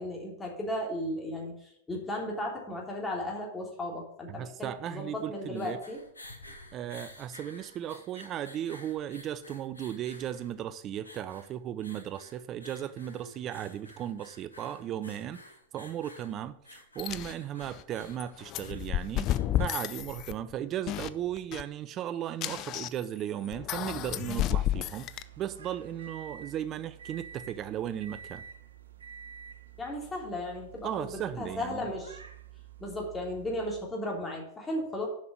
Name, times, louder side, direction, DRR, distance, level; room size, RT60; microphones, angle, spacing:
voice 1, 0.0-6.0 29.8-31.1 31.4-32.2 32.8-35.1, left 1 dB, 15° left, 3.1 m, -35 dB
voice 2, 4.3-5.8 6.7-15.4 15.7-19.3 19.6-28.4 30.8-31.9, right 10 dB, 30° right, 0.4 m, -36 dB
sound 1, 5.4-20.7, left 1 dB, 80° left, 1.3 m, -52 dB
sound 2, 17.0-17.3 17.6-17.8 18.1-20.5 20.9-21.1 21.4-21.6 22.4-23.0 23.4-25.2, left 12 dB, 35° left, 0.4 m, -31 dB
sound 3, 24.4-33.8, right 7 dB, 70° right, 0.8 m, -49 dB
7.2 x 5.9 x 7.4 m
figure-of-eight pair, 90°, 0 cm